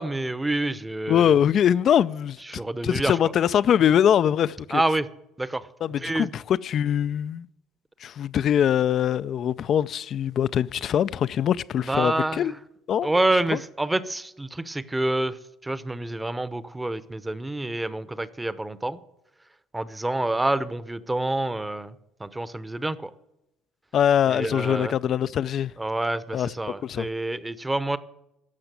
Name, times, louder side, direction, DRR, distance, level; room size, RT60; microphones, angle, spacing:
voice 1, 0.0-1.4 2.5-3.2 4.7-5.1 5.4-5.7 6.0-6.3 11.9-12.5 13.0-15.4 15.6-19.0 19.7-21.9 22.2-23.1 24.3-24.9 25.8-28.0, right 2 dB, 15° right, 0.8 m, -27 dB
voice 2, 1.1-2.4 2.8-4.8 5.8-7.5 8.0-12.5 12.9-13.1 13.5-13.6 23.9-25.7 26.3-26.5 26.8-27.1, left 9 dB, 55° left, 0.4 m, -22 dB
15.0 x 5.9 x 9.0 m
supercardioid pair, 80°, 0 cm